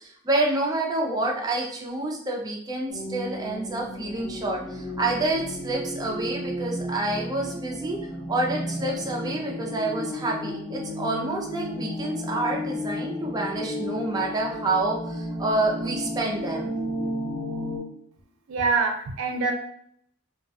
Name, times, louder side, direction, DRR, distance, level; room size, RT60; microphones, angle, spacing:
voice 1, 0.0-8.0 8.3-16.7, right 2 dB, 20° right, -1 dB, 0.4 m, -28 dB
sound 1, 2.9-17.8, left 1 dB, 5° left, 0.7 m, -33 dB
voice 2, 18.5-19.5, right 4 dB, 90° right, 3 dB, 0.4 m, -24 dB
2.3 x 2.2 x 2.6 m, 0.67 s
head